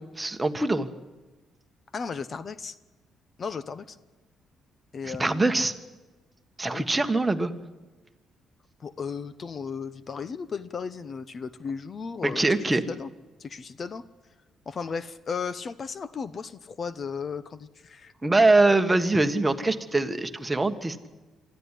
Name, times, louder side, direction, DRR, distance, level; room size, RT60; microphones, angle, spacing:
voice 1, 0.2-0.9 5.0-5.7 6.6-7.5 12.2-12.8 18.2-21.1, right 2 dB, 15° right, 7 dB, 1.5 m, -23 dB
voice 2, 1.9-2.7 3.4-4.0 4.9-5.6 6.7-6.8 8.8-13.1 13.4-14.0 14.7-18.1, left 5 dB, 45° left, 16 dB, 0.9 m, -35 dB
24.5 x 13.5 x 10.0 m, 1.2 s
cardioid pair, 90°, 0 cm